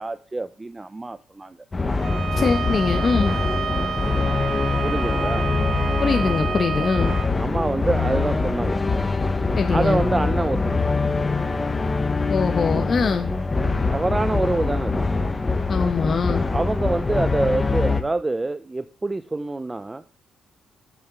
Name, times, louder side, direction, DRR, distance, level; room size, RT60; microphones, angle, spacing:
voice 1, 0.0-1.6 4.8-5.5 7.4-8.8 9.7-10.9 13.9-15.1 16.5-20.0, right 2 dB, 20° right, 12 dB, 0.5 m, -26 dB
sound 1, 1.7-18.0, left 3 dB, 25° left, 1.2 m, -23 dB
Bowed string instrument, 2.0-7.3, right 7 dB, 70° right, 1.1 m, -30 dB
voice 2, 2.3-3.3 6.0-7.1 9.5-10.0 12.3-13.3 15.7-16.5, left 5 dB, 40° left, 6 dB, 1.1 m, -22 dB
7.8 x 6.6 x 6.7 m, 0.39 s
cardioid pair, 90°, 0 cm